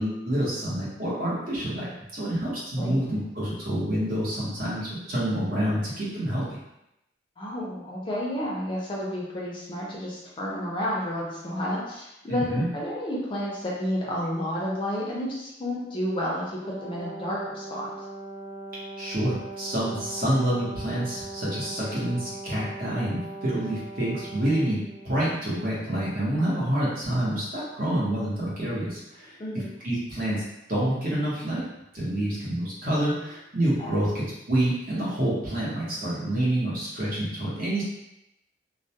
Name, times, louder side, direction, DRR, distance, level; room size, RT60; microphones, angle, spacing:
voice 1, 0.0-6.6 12.3-12.7 19.0-29.4 29.8-30.4 30.7-31.6 31.9-37.8, right 1 dB, 55° right, -7 dB, 0.9 m, -27 dB
voice 2, 7.4-17.9 29.4-29.7 33.8-34.0, equal, 30° left, -5 dB, 0.5 m, -31 dB
Brass instrument, 16.6-25.3, right 2 dB, 15° right, 1.1 m, -40 dB
2.2 x 2.1 x 2.7 m, 0.86 s
head